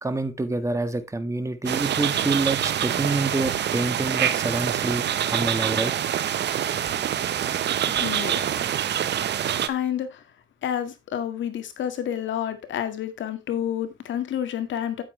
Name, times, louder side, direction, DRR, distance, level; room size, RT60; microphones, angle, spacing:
voice 1, 0.0-5.9, right 2 dB, 15° right, 1.6 m, -27 dB
sound 1, 1.7-9.7, right 10 dB, 60° right, 0.9 m, -25 dB
voice 2, 7.9-8.7 9.7-10.2 10.6-15.0, left 10 dB, 70° left, 1.9 m, -29 dB
8.9 x 8.6 x 3.3 m
cardioid pair, 90°, 20 cm